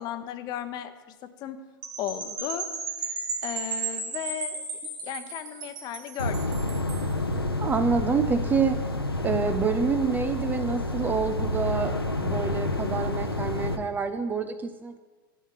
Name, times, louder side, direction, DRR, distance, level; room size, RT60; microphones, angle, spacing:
voice 1, 0.0-1.6 2.0-2.7 3.0-3.2 3.4-4.6 5.0-6.6, left 10 dB, 35° left, 10 dB, 0.9 m, -35 dB
sound 1, 1.8-7.1, right 4 dB, 40° right, 2.7 m, -34 dB
sound 2, 6.2-13.8, left 2 dB, 90° left, 0.9 m, -29 dB
voice 2, 7.6-8.8 9.2-15.0, right 5 dB, 15° right, 9 dB, 0.4 m, -27 dB
12.5 x 5.8 x 5.9 m, 1.3 s
figure-of-eight pair, 95°, 12 cm